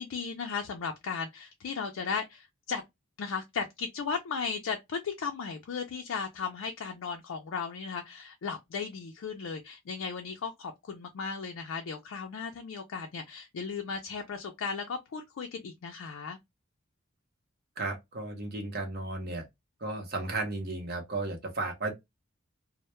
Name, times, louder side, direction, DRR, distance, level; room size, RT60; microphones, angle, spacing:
voice 1, 0.0-2.8 3.2-16.4, left 5 dB, 80° left, 0.4 m, -36 dB
voice 2, 17.8-19.4 19.8-21.9, right 2 dB, 50° right, 0.7 m, -34 dB
2.1 x 2.0 x 2.9 m
head